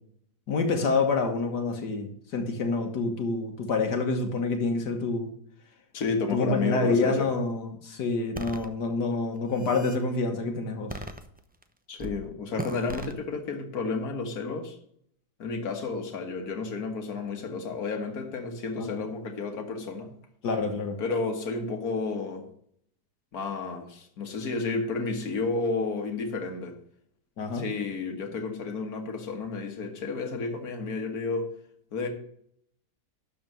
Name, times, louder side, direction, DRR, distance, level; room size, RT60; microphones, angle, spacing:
voice 1, 0.5-5.3 6.3-11.0 18.8-19.0 20.4-21.0 27.4-27.6, left 3 dB, 85° left, 1.9 m, -27 dB
voice 2, 5.9-7.3 11.9-14.8 15.4-20.1 21.0-22.5 23.3-26.8 27.5-31.5 31.9-32.1, left 4 dB, 65° left, 2.0 m, -31 dB
sound 1, 8.3-8.7 9.4-10.0 10.9-11.6 12.0-12.2 12.6-13.1, right 1 dB, 15° right, 0.3 m, -37 dB
12.0 x 4.3 x 7.5 m
omnidirectional pair, 1.7 m